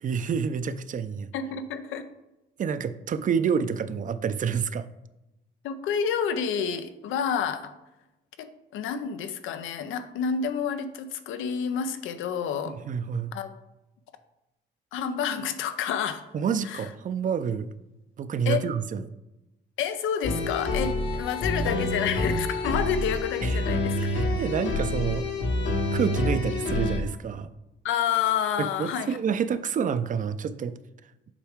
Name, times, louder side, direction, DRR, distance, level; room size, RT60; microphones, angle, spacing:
voice 1, 0.0-1.3 2.6-4.9 12.7-13.3 16.3-17.7 18.2-19.0 23.4-23.6 24.0-25.2 25.9-27.5 28.6-30.8, right 7 dB, 40° right, 12 dB, 0.5 m, -28 dB
voice 2, 1.3-2.1 5.6-7.7 8.4-12.8 13.3-13.5 14.9-16.2 16.6-16.9 18.5-18.6 19.8-24.0 27.8-29.2, left 7 dB, 85° left, 10 dB, 0.6 m, -29 dB
sound 1, 20.2-27.0, left 2 dB, 65° left, 1.2 m, -27 dB
7.3 x 4.7 x 3.5 m, 0.96 s
cardioid pair, 90°, 20 cm